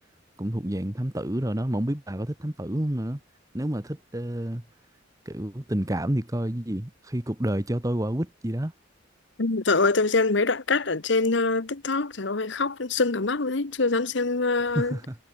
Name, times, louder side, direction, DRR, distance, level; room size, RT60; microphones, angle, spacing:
voice 1, 0.4-3.2 3.5-4.6 5.3-8.7 14.7-15.2, right 1 dB, 15° right, 1.1 m, -29 dB
voice 2, 9.4-15.0, left 3 dB, 65° left, 1.1 m, -24 dB
head